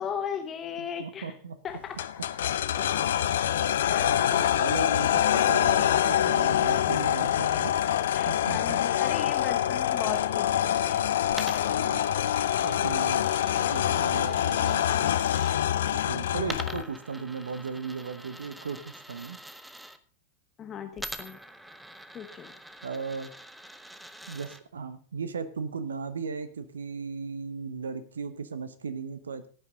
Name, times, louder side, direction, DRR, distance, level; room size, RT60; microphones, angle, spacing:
voice 1, 0.0-1.3 1.6-2.1 2.7-3.1 3.9-4.5 8.2-11.0 20.6-21.4 22.1-22.5, left 7 dB, 25° left, 7 dB, 1.1 m, -37 dB
voice 2, 0.8-1.6 4.0-7.7 8.3-8.8 11.7-12.2 12.6-13.2 13.6-15.1 15.9-19.4 22.8-23.3 24.3-29.5, right 5 dB, 70° right, 13 dB, 1.0 m, -36 dB
sound 1, 2.0-16.8, left 11 dB, 60° left, 0.6 m, -25 dB
Coin (dropping), 11.3-15.6 16.4-20.0 21.0-24.6, right 1 dB, 5° right, 1.0 m, -44 dB
16.5 x 9.0 x 3.8 m, 0.41 s
figure-of-eight pair, 90°, 0 cm